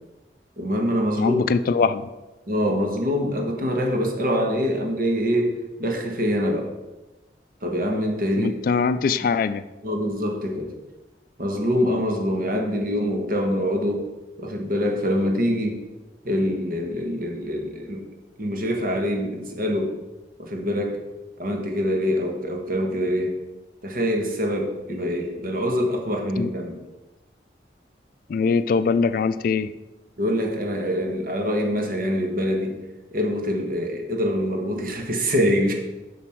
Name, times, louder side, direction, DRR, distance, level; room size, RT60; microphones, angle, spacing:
voice 1, 0.6-1.4 2.5-6.7 7.6-8.5 9.8-10.7 11.4-14.1 14.4-15.8 16.2-18.0 18.4-19.9 20.4-21.0 21.4-23.4 23.8-26.8 30.2-32.8 33.1-35.7, equal, 55° right, 1 dB, 1.3 m, -24 dB
voice 2, 1.2-2.1 8.4-9.6 26.4-26.5 28.3-29.7, left 5 dB, 50° left, 14 dB, 0.3 m, -22 dB
7.3 x 6.0 x 4.5 m, 1.1 s
head